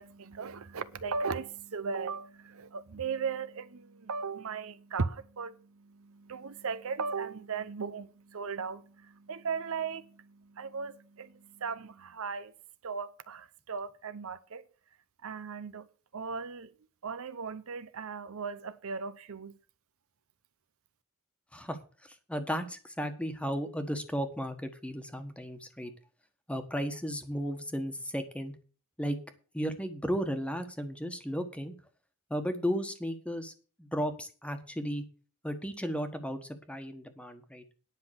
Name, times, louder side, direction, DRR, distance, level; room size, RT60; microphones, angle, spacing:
voice 1, 0.0-12.5 12.8-14.7 15.2-15.9 16.1-16.7 17.0-19.6, right 5 dB, 65° right, 0.7 m, -37 dB
voice 2, 22.3-25.9 26.5-28.5 29.0-29.2 29.5-31.7 32.3-33.5 33.8-35.0 35.4-37.6, equal, 5° left, 1.4 m, -34 dB
10.0 x 5.7 x 8.1 m
head